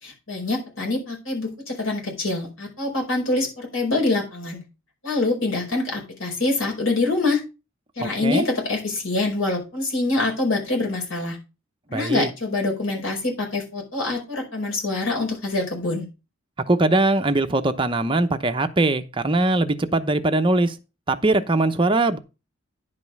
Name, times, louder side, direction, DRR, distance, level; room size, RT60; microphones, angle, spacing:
voice 1, 0.0-4.6 5.0-7.4 8.0-11.4 11.9-16.0, left 2 dB, 70° left, 5.2 m, -25 dB
voice 2, 8.0-8.4 11.9-12.3 16.7-20.7 21.1-22.2, right 2 dB, 25° right, 0.8 m, -21 dB
10.5 x 5.3 x 5.3 m
head